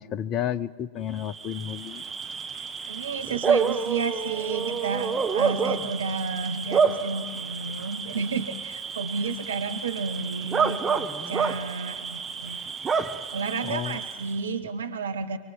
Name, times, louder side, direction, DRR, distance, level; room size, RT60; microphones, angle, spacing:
voice 1, 0.0-2.0 13.6-14.0, left 10 dB, 30° left, 17 dB, 0.8 m, -31 dB
Bark / Cricket, 1.2-14.5, right 6 dB, 20° right, 1.3 m, -29 dB
voice 2, 2.9-12.6 13.3-15.4, right 5 dB, 65° right, 9 dB, 1.2 m, -31 dB
24.5 x 24.0 x 7.5 m, 1.5 s
figure-of-eight pair, 90°, 0 cm